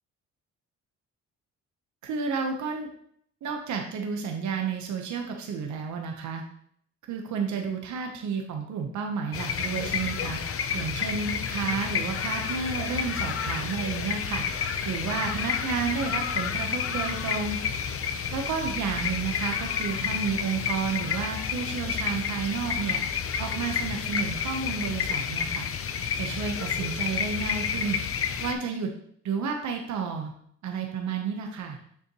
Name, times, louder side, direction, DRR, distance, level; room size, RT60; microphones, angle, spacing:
voice 1, 2.0-2.9 3.4-6.4 7.1-14.4 14.8-17.6 18.3-23.1 23.4-25.7 26.2-28.0 28.4-28.9 29.2-30.3 30.6-31.8, right 5 dB, 70° right, 3 dB, 1.0 m, -31 dB
sound 1, 9.3-28.5, left 7 dB, 50° left, 0.8 m, -30 dB
7.2 x 6.7 x 3.1 m, 0.65 s
cardioid pair, 90°, 30 cm